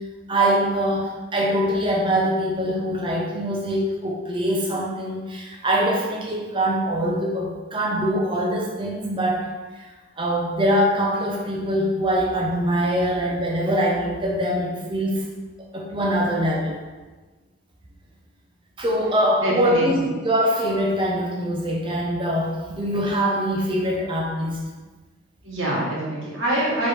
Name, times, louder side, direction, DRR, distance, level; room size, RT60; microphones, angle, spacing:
voice 1, 0.3-9.5 9.8-9.9 10.2-15.2 15.7-16.8 18.8-24.6, equal, 25° right, -2 dB, 0.7 m, -23 dB
voice 2, 19.4-20.1 25.4-26.9, right 1 dB, 85° right, -6 dB, 1.3 m, -25 dB
4.4 x 3.3 x 3.4 m, 1.3 s
head